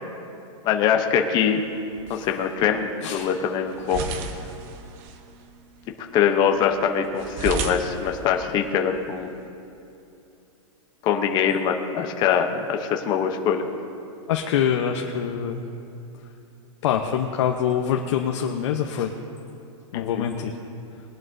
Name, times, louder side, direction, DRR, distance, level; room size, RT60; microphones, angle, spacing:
voice 1, 0.6-1.6 2.1-4.0 6.1-9.3 11.0-13.7 19.9-20.3, left 7 dB, 25° left, 3 dB, 0.8 m, -23 dB
sound 1, 1.4-9.5, right 4 dB, 35° right, 0.9 m, -37 dB
voice 2, 14.3-15.6 16.8-19.1 19.9-20.6, left 8 dB, 60° left, 2 dB, 0.9 m, -25 dB
20.5 x 11.0 x 2.7 m, 2.7 s
supercardioid pair, 155°, 17 cm